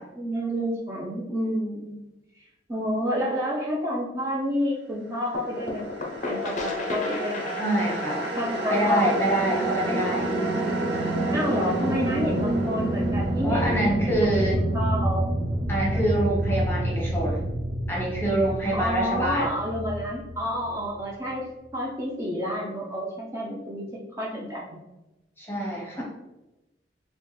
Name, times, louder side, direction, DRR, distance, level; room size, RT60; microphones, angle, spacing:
voice 1, 0.0-2.0 2.4-2.5 2.7-5.8 6.2-7.5 8.4-9.1 11.3-15.3 15.9-16.5 18.7-23.9 24.2-24.6 26.0-26.1, equal, 15° right, -4 dB, 0.4 m, -29 dB
sound 1, 5.3-10.9, left 3 dB, 40° left, 0.5 m, -34 dB
sound 2, 5.8-21.0, right 1 dB, 85° right, 0.7 m, -28 dB
voice 2, 7.6-8.3 8.7-10.3 13.4-14.6 15.7-17.4 17.9-19.5 25.4-26.0, right 1 dB, 10° left, -3 dB, 0.9 m, -26 dB
4.2 x 2.1 x 3.1 m, 0.99 s
head